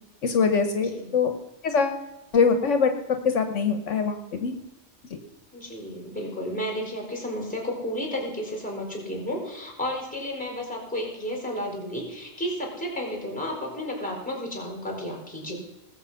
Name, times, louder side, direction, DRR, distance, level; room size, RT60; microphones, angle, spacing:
voice 1, 0.2-1.3 1.6-2.0 2.3-2.9 3.2-4.5, left 5 dB, 75° left, 7 dB, 1.4 m, -23 dB
voice 2, 0.8-1.1 5.5-15.6, equal, 5° left, 0 dB, 4.5 m, -32 dB
19.5 x 7.4 x 5.6 m, 1.1 s
omnidirectional pair, 1.3 m